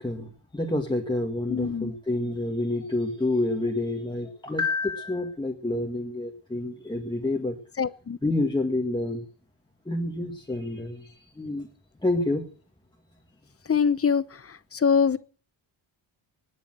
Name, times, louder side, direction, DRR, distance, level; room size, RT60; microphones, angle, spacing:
voice 1, 0.0-7.6 8.2-9.2 9.9-11.7 12.0-12.4, left 2 dB, 10° left, 2 dB, 2.0 m, -28 dB
voice 2, 1.5-1.9 7.8-8.2 13.7-14.2 14.7-15.2, left 6 dB, 30° left, 17 dB, 0.8 m, -23 dB
19.5 x 6.9 x 7.6 m, 0.40 s
cardioid pair, 105°, 49 cm